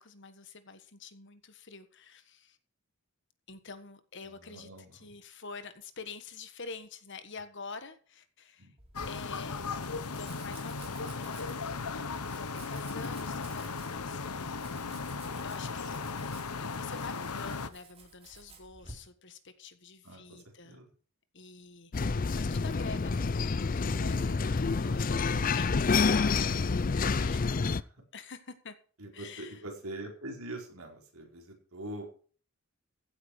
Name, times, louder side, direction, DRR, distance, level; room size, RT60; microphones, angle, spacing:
voice 1, 0.0-2.6 3.5-8.7 9.1-9.7 10.1-11.6 12.3-14.4 15.4-20.8 21.3-23.3 23.7-27.8 28.1-28.7 29.1-29.6, left 4 dB, 55° left, 1.5 m, -47 dB
voice 2, 4.4-5.1 8.6-8.7 14.6-15.0 20.0-20.9 24.9-25.0 25.3-25.6 27.6-27.8 29.0-32.1, right 1 dB, 70° right, 4.7 m, -44 dB
Domestic sounds home sounds, 8.8-18.9, right 3 dB, 25° right, 3.9 m, -54 dB
sound 1, 8.9-17.7, left 4 dB, 90° left, 1.1 m, -37 dB
sound 2, 21.9-27.8, left 4 dB, 40° left, 0.5 m, -28 dB
15.5 x 8.8 x 4.9 m
head